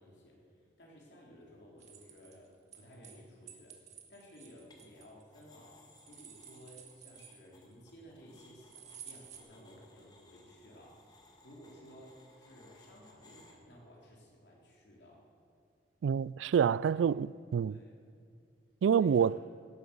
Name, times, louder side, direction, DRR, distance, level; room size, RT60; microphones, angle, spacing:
voice 1, 0.0-3.8 4.1-15.2 16.9-17.1 17.6-18.0 18.9-19.4, equal, 65° left, 3.8 m, -56 dB
sound 1, 1.8-3.2 3.5-5.4 5.9-7.7 8.7-9.4, right 8 dB, 40° right, 1.7 m, -53 dB
sound 2, 4.7-5.1 5.3-13.5, left 2 dB, 20° left, 1.8 m, -62 dB
voice 2, 16.0-17.7 18.8-19.4, right 7 dB, 85° right, 0.3 m, -27 dB
18.0 x 11.0 x 7.0 m
head